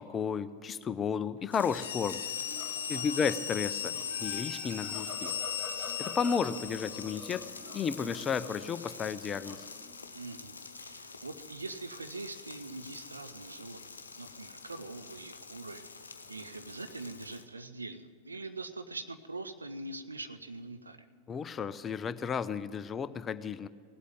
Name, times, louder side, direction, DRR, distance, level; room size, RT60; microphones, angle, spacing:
voice 1, 0.0-2.2 2.9-5.3 6.0-7.5 7.7-9.7 21.3-23.7, left 6 dB, 20° left, 15 dB, 0.5 m, -33 dB
sound 1, 1.5-17.5, left 4 dB, 75° left, 0.8 m, -46 dB
sound 2, 1.6-7.3, left 8 dB, 55° left, 1.1 m, -38 dB
sound 3, 2.5-3.0 3.5-8.7 9.3-10.1, left 2 dB, 5° right, 2.3 m, -48 dB
voice 2, 2.9-3.4 10.1-13.8 14.1-21.1, right 2 dB, 80° right, 9 dB, 0.8 m, -43 dB
17.5 x 8.3 x 9.2 m, 2.2 s
figure-of-eight pair, 90°, 0 cm